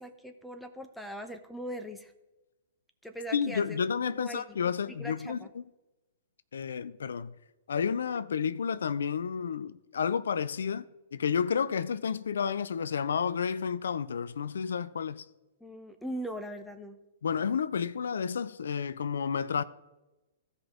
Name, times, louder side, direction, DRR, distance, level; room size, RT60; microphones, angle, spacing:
voice 1, 0.0-2.1 3.0-3.8 4.0-4.6 4.9-5.5 15.6-17.0, equal, ahead, 0.8 m, -40 dB
voice 2, 3.3-5.6 6.5-7.3 7.7-10.8 11.1-15.2 17.2-19.6, left 6 dB, 70° left, 0.4 m, -31 dB
15.5 x 5.2 x 3.6 m
hypercardioid pair, 115°, 0 cm